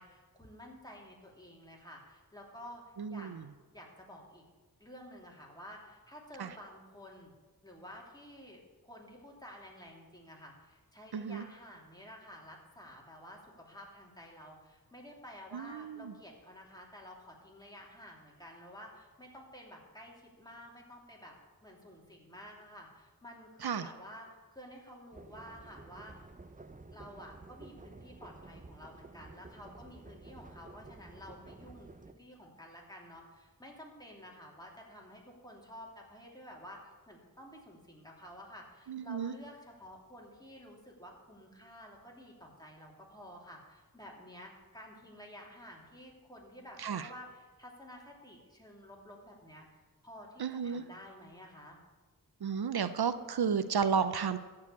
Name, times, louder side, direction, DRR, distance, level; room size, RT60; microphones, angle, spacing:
voice 1, 0.0-4.5 4.8-7.3 7.6-21.4 21.6-26.3 26.9-49.7 50.0-51.8, equal, 10° left, -2 dB, 2.8 m, -51 dB
voice 2, 3.0-3.5 6.4-6.5 11.1-11.5 15.5-16.1 23.6-23.9 38.9-39.3 46.8-47.1 50.4-50.8 52.4-54.4, right 6 dB, 80° right, 11 dB, 0.6 m, -33 dB
sound 1, 25.1-32.1, right 3 dB, 20° right, 0.7 m, -52 dB
14.5 x 4.8 x 8.4 m, 1.3 s
wide cardioid pair, 65°, 38 cm